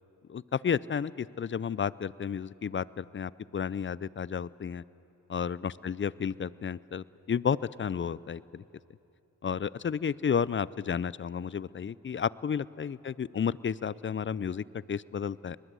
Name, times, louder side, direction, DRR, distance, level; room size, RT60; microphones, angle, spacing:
voice 1, 0.3-4.8 5.3-8.6 9.4-15.6, left 7 dB, 30° left, 21 dB, 0.5 m, -32 dB
22.5 x 20.5 x 7.6 m, 2.9 s
supercardioid pair, 45°, 43 cm